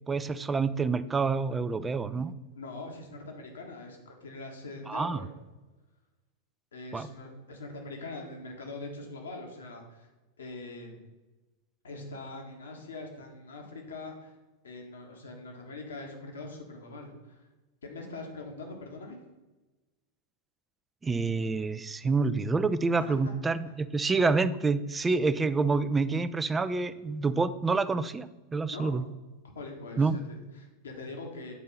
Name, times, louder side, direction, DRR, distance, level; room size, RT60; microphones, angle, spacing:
voice 1, 0.1-2.3 4.9-5.2 6.9-7.1 21.0-29.0 30.0-30.1, right 4 dB, 15° right, 14 dB, 0.4 m, -27 dB
voice 2, 2.5-5.3 6.7-10.1 10.4-11.0 11.8-14.4 14.6-17.5 17.8-19.2 22.9-23.2 23.6-23.7 28.7-28.9 29.5-31.5, left 2 dB, 65° left, 2 dB, 1.5 m, -42 dB
8.2 x 4.3 x 5.4 m, 1.1 s
figure-of-eight pair, 90°, 0 cm